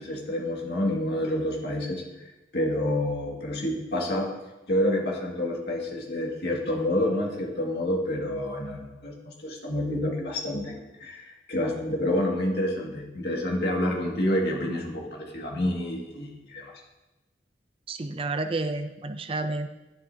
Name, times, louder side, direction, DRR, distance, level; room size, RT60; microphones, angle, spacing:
voice 1, 0.0-2.3 2.5-4.3 4.7-16.7, left 1 dB, 65° left, -1 dB, 2.1 m, -28 dB
voice 2, 17.9-19.7, right 2 dB, 30° right, 9 dB, 0.5 m, -30 dB
11.5 x 11.0 x 2.8 m, 1.0 s
head